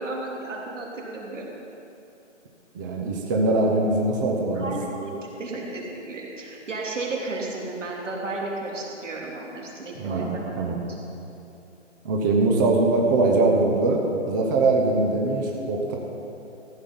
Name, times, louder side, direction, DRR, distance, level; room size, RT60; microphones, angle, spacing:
voice 1, 0.0-1.5 4.5-10.7, right 2 dB, 85° right, -2 dB, 3.2 m, -33 dB
voice 2, 2.7-4.7 10.0-10.8 12.0-14.0 14.3-16.0, right 2 dB, 15° right, 0 dB, 0.7 m, -22 dB
14.5 x 8.6 x 5.5 m, 2.9 s
hypercardioid pair, 155°, 36 cm